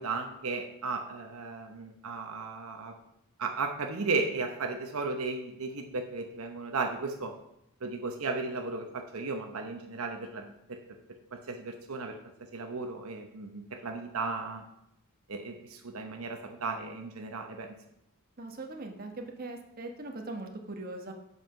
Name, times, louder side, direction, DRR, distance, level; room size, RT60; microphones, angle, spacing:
voice 1, 0.0-2.9 3.4-7.3 7.8-10.4 11.3-12.2 12.5-14.6 15.3-17.7, right 3 dB, 75° right, 4 dB, 0.8 m, -35 dB
voice 2, 18.4-21.1, right 2 dB, 45° right, 3 dB, 1.1 m, -40 dB
7.9 x 5.6 x 5.6 m, 0.81 s
head